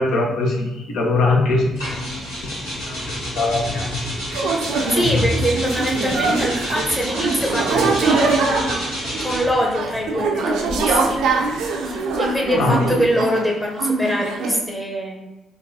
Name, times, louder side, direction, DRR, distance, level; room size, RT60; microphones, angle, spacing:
voice 1, 0.0-1.7 1.9-2.0 2.4-2.5 2.9-3.9 12.6-12.8, left 3 dB, 60° left, 1 dB, 0.6 m, -21 dB
sound 1, 1.4-10.2, left 3 dB, 40° left, 1.0 m, -33 dB
sound 2, 1.8-9.6 10.5-13.0, equal, 75° left, 1.4 m, -30 dB
sound 3, 4.3-13.5 13.8-14.6, right 3 dB, 65° right, 0.5 m, -23 dB
voice 2, 4.9-8.3 9.2-11.2 11.8-15.3, equal, 15° left, 0 dB, 0.9 m, -24 dB
5.3 x 2.3 x 2.7 m, 1.1 s
figure-of-eight pair, 45°, 0 cm